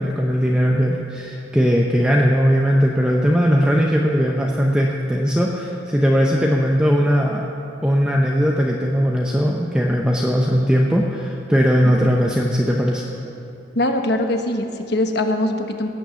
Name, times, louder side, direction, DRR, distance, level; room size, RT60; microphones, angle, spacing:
voice 1, 0.0-7.4 7.8-13.0, equal, 5° right, -1 dB, 0.7 m, -19 dB
voice 2, 13.7-15.9, left 1 dB, 60° left, 5 dB, 1.2 m, -22 dB
16.5 x 8.9 x 7.1 m, 2.8 s
head